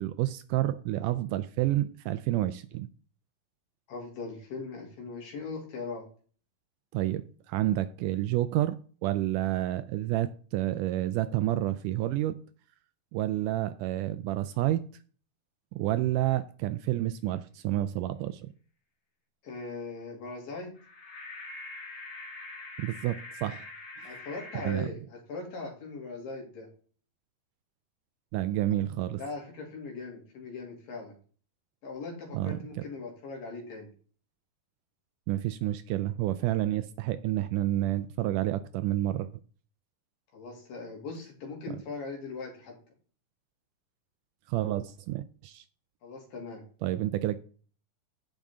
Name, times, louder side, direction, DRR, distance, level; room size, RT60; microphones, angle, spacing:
voice 1, 0.0-2.9 6.9-12.4 13.1-14.8 15.7-18.5 22.8-23.7 24.0-24.1 24.5-24.9 28.3-29.2 32.3-32.6 35.3-39.3 44.5-45.6 46.8-47.4, right 14 dB, 80° right, 1.9 m, -29 dB
voice 2, 3.9-6.1 19.4-20.7 24.0-26.7 29.2-31.2 31.8-33.9 40.3-42.8 46.0-46.6, left 4 dB, 75° left, 4.3 m, -40 dB
sound 1, 20.8-24.8, left 2 dB, 45° left, 3.2 m, -44 dB
15.5 x 5.2 x 3.6 m
omnidirectional pair, 4.0 m